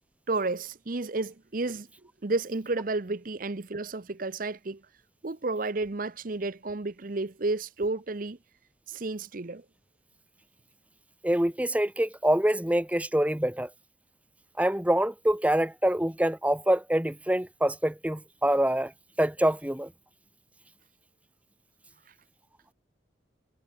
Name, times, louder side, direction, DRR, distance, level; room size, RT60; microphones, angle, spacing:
voice 1, 0.3-1.9 2.2-4.8 5.2-8.4 8.9-9.6, right 3 dB, 45° right, 0.8 m, -31 dB
voice 2, 11.2-13.7 14.6-18.9 19.2-19.9, right 1 dB, 5° right, 0.7 m, -25 dB
head